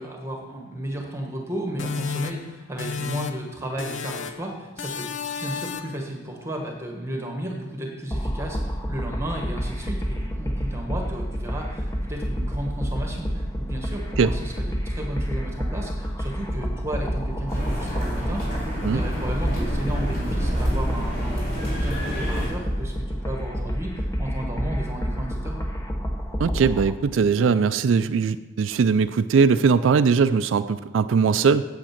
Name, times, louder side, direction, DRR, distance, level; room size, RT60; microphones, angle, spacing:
voice 1, 0.0-25.6, right 1 dB, 15° right, 1 dB, 1.3 m, -33 dB
sound 1, 1.8-3.5 3.8-4.5 4.8-6.0, left 5 dB, 85° left, 0.7 m, -32 dB
sound 2, 8.1-26.9, equal, 15° left, 0.8 m, -29 dB
sound 3, 17.5-22.5, equal, 50° left, 3.6 m, -28 dB
voice 2, 26.4-31.6, right 5 dB, 80° right, 12 dB, 0.4 m, -20 dB
9.0 x 7.9 x 5.8 m, 1.2 s
head